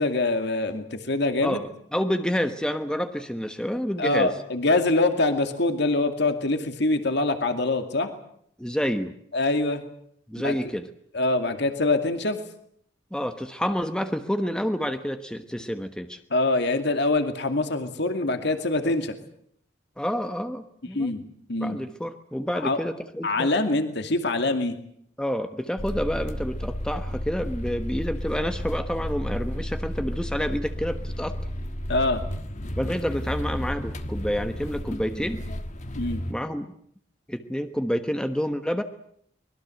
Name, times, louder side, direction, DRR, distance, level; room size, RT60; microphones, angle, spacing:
voice 1, 0.0-1.6 4.0-8.1 9.3-9.8 10.4-10.5 11.1-12.4 16.3-19.1 20.9-21.2 21.5-21.8 22.6-22.8 23.2-24.8 31.9-32.2 36.0-36.2, left 2 dB, 65° left, 7 dB, 2.3 m, -24 dB
voice 2, 1.4-4.3 8.6-9.1 10.3-10.9 13.1-16.2 18.8-18.9 20.0-21.1 21.6-23.5 25.2-31.4 32.8-35.4 36.3-36.7 37.3-38.8, equal, 5° left, 7 dB, 1.1 m, -28 dB
sound 1, 25.8-36.3, equal, 40° left, 1.4 m, -32 dB
24.5 x 21.5 x 7.8 m, 0.69 s
head